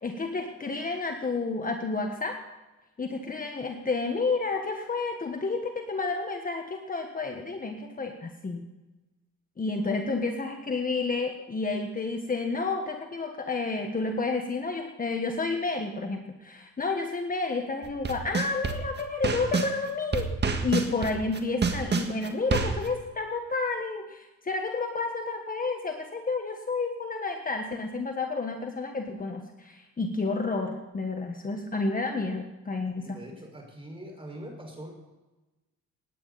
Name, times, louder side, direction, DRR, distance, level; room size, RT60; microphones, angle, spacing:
voice 1, 0.0-2.4 3.0-8.7 9.6-33.2, left 3 dB, 30° left, 4 dB, 1.5 m, -30 dB
sound 1, 17.8-19.7 20.1-22.9, right 5 dB, 35° right, 1.7 m, -27 dB
voice 2, 33.0-34.9, right 1 dB, 20° right, 2 dB, 5.3 m, -43 dB
18.0 x 9.8 x 4.2 m, 1.1 s
cardioid pair, 90°, 30 cm